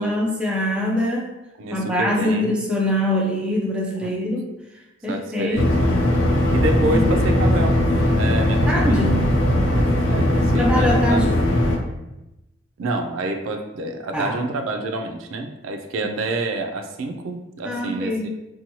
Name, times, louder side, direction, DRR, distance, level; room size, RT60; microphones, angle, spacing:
voice 1, 0.0-1.3 1.7-4.5 5.0-5.7 6.9-7.0 8.5-9.2 10.6-11.4 14.1-14.4 16.0-16.1 17.6-18.3, left 1 dB, 5° right, -2 dB, 0.3 m, -23 dB
voice 2, 1.6-2.5 4.0-4.1 5.1-5.9 6.5-7.9 8.2-9.1 9.7-11.2 12.8-18.3, right 2 dB, 85° right, 4 dB, 0.3 m, -28 dB
sound 1, 5.5-11.8, left 1 dB, 75° left, 0.5 m, -19 dB
2.8 x 2.2 x 2.7 m, 0.96 s
head